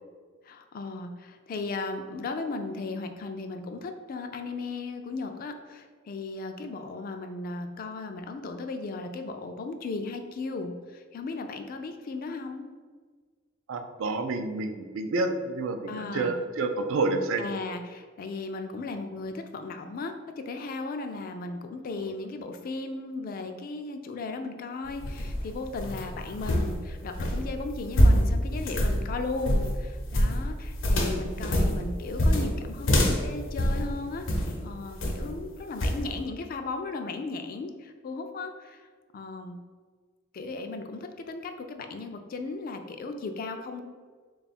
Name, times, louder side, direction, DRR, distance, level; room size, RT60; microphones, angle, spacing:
voice 1, 0.4-12.6 15.9-16.4 17.4-20.1 20.5-38.9 39.1-39.6 40.3-43.8, left 3 dB, 45° left, 6 dB, 0.3 m, -36 dB
voice 2, 13.7-17.4 22.0-22.1, right 3 dB, 80° right, 7 dB, 0.4 m, -29 dB
sound 1, 24.8-34.6 35.0-35.4 35.8-36.0, equal, 75° left, 0.7 m, -25 dB
3.7 x 2.3 x 4.1 m, 1.5 s
head